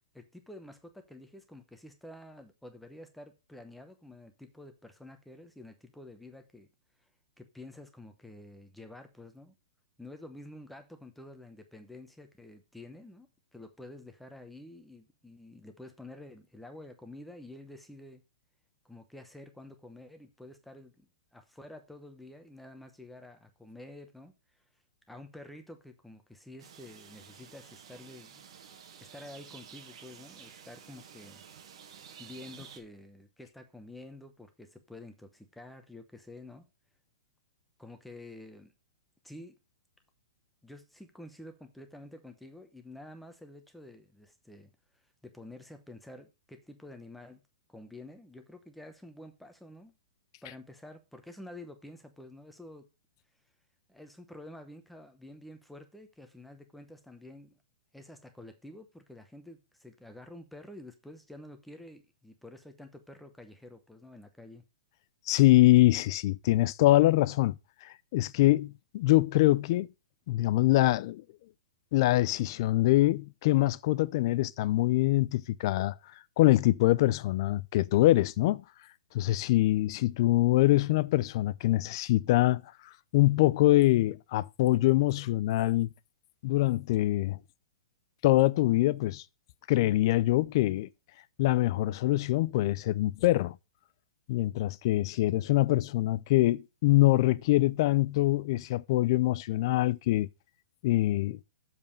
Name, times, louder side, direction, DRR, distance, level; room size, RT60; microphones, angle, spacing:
voice 1, 0.1-6.7 7.4-9.5 10.0-18.2 18.8-24.3 25.1-28.4 29.1-31.4 32.2-36.7 37.8-38.7 39.2-39.6 40.6-44.7 45.2-47.4 47.7-49.9 50.4-52.9 53.9-57.6 57.9-64.6, left 1 dB, ahead, 0.8 m, -49 dB
sound 1, 26.6-32.8, right 7 dB, 60° right, 1.4 m, -51 dB
voice 2, 65.3-69.9 70.3-71.2 71.9-75.9 76.4-78.6 79.1-82.6 83.1-85.9 86.4-87.4 88.2-89.2 89.7-90.9 91.4-93.6 94.3-100.3 100.8-101.4, left 17 dB, 40° left, 0.4 m, -24 dB
6.9 x 5.4 x 5.4 m
hypercardioid pair, 155°, 4 cm